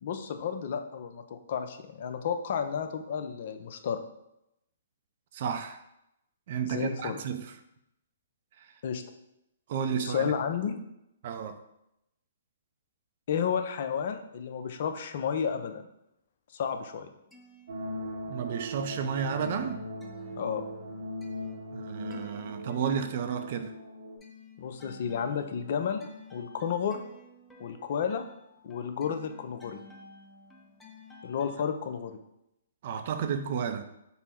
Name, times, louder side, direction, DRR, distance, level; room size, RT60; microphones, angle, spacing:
voice 1, 0.0-4.0 6.6-7.2 8.8-9.0 9.9-10.8 13.3-15.8 16.5-17.1 20.4-20.6 24.6-27.0 27.6-28.2 28.6-29.8 31.2-32.2, left 7 dB, 55° left, 0.5 m, -32 dB
voice 2, 5.3-5.8 6.5-7.5 9.7-10.3 11.2-11.6 18.3-19.9 21.7-23.7 32.8-33.8, right 7 dB, 50° right, 0.4 m, -32 dB
sound 1, 17.1-18.5 18.9-31.7, left 3 dB, 5° left, 0.6 m, -54 dB
sound 2, 17.7-24.2, equal, 70° right, 0.8 m, -39 dB
5.4 x 2.0 x 4.4 m
hypercardioid pair, 135°, 0 cm